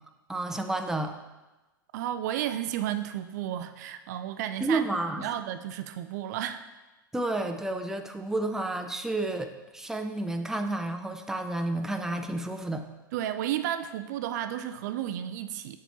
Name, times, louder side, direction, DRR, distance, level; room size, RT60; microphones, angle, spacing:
voice 1, 0.3-1.1 4.6-5.3 7.1-12.8, right 2 dB, 5° right, 5 dB, 0.5 m, -31 dB
voice 2, 1.9-4.8 5.2-6.6 13.1-15.8, right 11 dB, 55° right, 10 dB, 0.4 m, -32 dB
7.0 x 6.9 x 3.0 m, 1.1 s
figure-of-eight pair, 95°, 11 cm